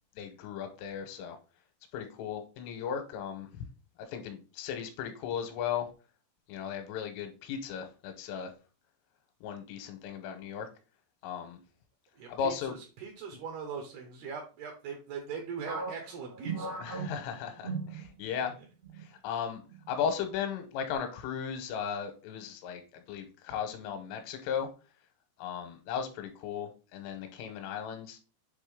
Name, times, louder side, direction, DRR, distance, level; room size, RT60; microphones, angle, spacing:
voice 1, 0.2-1.4 1.9-3.7 4.1-5.9 6.5-8.5 9.4-10.7 11.2-11.6 12.3-12.8 16.8-18.6 19.0-19.6 19.9-24.7 25.4-28.2, left 7 dB, 85° left, 7 dB, 3.3 m, -36 dB
voice 2, 12.2-16.8, right 6 dB, 85° right, 3 dB, 2.2 m, -40 dB
sound 1, 15.7-18.5 18.8-19.0 19.7-20.1, right 4 dB, 70° right, 0.7 m, -38 dB
7.9 x 3.5 x 3.6 m, 0.34 s
omnidirectional pair, 5.9 m